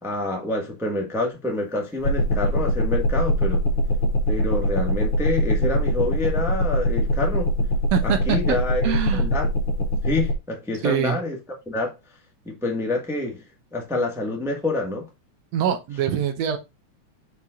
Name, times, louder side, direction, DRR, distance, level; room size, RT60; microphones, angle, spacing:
voice 1, 0.0-3.6 4.3-7.5 8.0-9.5 10.0-11.4 11.7-12.0 12.4-13.4 13.7-15.1, left 2 dB, 5° right, 0.3 m, -27 dB
sound 1, 2.0-10.3, equal, 60° left, 1.8 m, -22 dB
voice 2, 7.9-8.6 8.8-9.3 10.8-11.2 15.5-16.6, right 9 dB, 70° right, 1.9 m, -24 dB
5.5 x 4.6 x 3.7 m
omnidirectional pair, 3.3 m